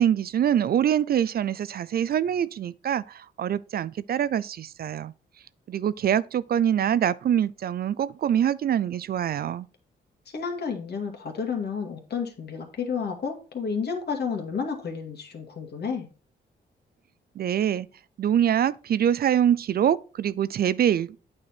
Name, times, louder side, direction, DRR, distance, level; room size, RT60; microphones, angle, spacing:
voice 1, 0.0-5.1 5.7-9.7 17.4-17.9 18.2-21.2, right 9 dB, 55° right, 0.4 m, -24 dB
voice 2, 10.3-16.1, left 6 dB, 60° left, 2.0 m, -31 dB
8.6 x 4.9 x 4.3 m
cardioid pair, 75°, 20 cm